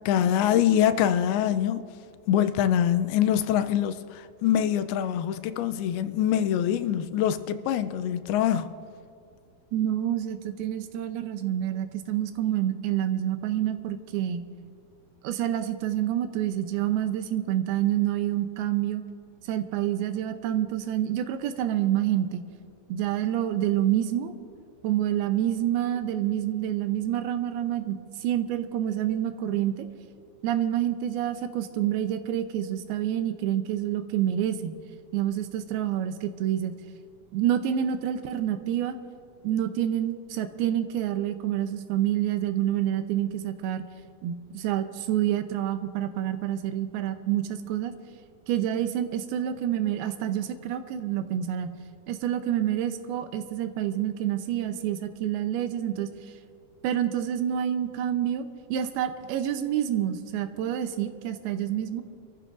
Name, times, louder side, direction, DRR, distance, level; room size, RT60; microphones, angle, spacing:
voice 1, 0.1-1.8 2.3-8.7, left 10 dB, 90° left, 2.6 m, -24 dB
voice 2, 9.7-14.4 15.2-19.0 19.5-22.4 22.9-24.3 24.8-29.9 30.4-34.8 35.1-36.8 37.3-39.0 39.4-43.8 44.2-47.9 48.5-51.7 52.1-56.1 56.8-62.0, right 11 dB, 90° right, 2.7 m, -28 dB
27.0 x 14.5 x 2.6 m
omnidirectional pair, 4.4 m